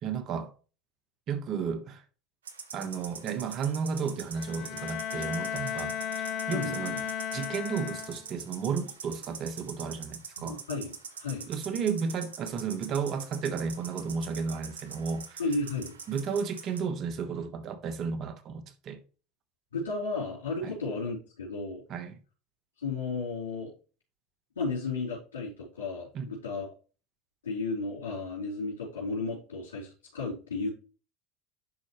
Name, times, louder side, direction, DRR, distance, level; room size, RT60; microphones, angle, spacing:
voice 1, 0.0-0.5 1.3-2.0 2.7-6.0 6.5-10.6 11.5-15.4 16.1-19.0 20.6-20.7 21.9-22.2 26.1-26.3, right 6 dB, 50° right, 1.2 m, -33 dB
sound 1, 2.5-16.8, right 6 dB, 90° right, 0.9 m, -44 dB
Bowed string instrument, 4.3-8.5, left 8 dB, 50° left, 0.8 m, -35 dB
voice 2, 10.4-10.9 11.2-11.5 15.4-16.0 19.7-21.8 22.8-23.7 24.6-26.7 27.4-30.7, left 3 dB, 85° left, 3.9 m, -33 dB
11.0 x 4.2 x 3.1 m
hypercardioid pair, 85°, 0 cm